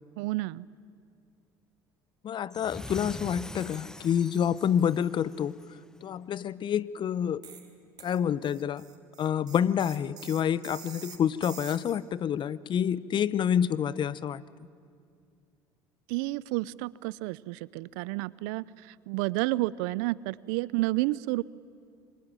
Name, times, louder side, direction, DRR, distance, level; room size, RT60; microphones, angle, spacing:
voice 1, 0.2-0.6 16.1-21.4, right 20 dB, 75° right, 21 dB, 0.6 m, -30 dB
voice 2, 2.2-5.6 6.0-7.4 8.0-8.8 9.2-14.4, left 9 dB, 45° left, 19 dB, 0.8 m, -28 dB
sound 1, 2.5-5.8, left 1 dB, 5° left, 0.8 m, -43 dB
sound 2, 7.4-7.7 8.0-12.0, right 7 dB, 35° right, 3.2 m, -47 dB
25.0 x 22.5 x 9.0 m, 2.4 s
hypercardioid pair, 75°, 11 cm